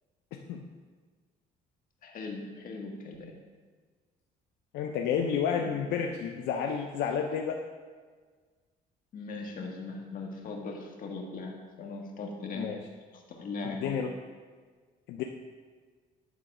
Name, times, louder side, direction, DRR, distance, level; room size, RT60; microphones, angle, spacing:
voice 1, 0.3-0.7 4.7-7.6 12.5-12.8 13.6-14.1 15.1-15.2, left 7 dB, 85° left, 2 dB, 0.7 m, -31 dB
voice 2, 2.0-3.3 9.1-12.7 13.1-14.0, left 3 dB, 55° left, 1 dB, 1.7 m, -39 dB
10.5 x 4.0 x 6.0 m, 1.5 s
cardioid pair, 110°, 17 cm